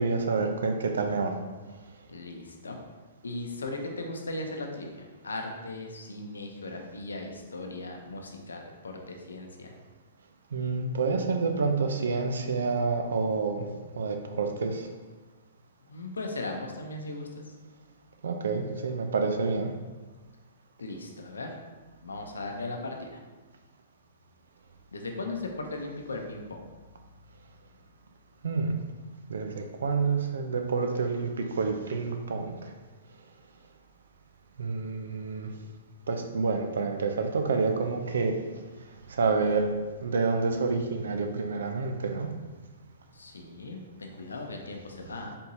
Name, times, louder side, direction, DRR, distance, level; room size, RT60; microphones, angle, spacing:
voice 1, 0.0-1.4 10.5-13.7 13.9-14.9 18.2-19.7 28.4-28.7 29.3-32.7 34.6-35.5 36.1-38.4 39.1-39.7 40.0-42.3, right 4 dB, 75° right, 5 dB, 0.5 m, -28 dB
voice 2, 2.1-2.8 3.2-9.7 15.8-17.3 20.8-21.6 22.0-23.2 24.9-26.7 43.1-45.4, left 2 dB, 90° left, 3 dB, 0.7 m, -38 dB
4.3 x 3.6 x 2.7 m, 1.3 s
hypercardioid pair, 125°, 0 cm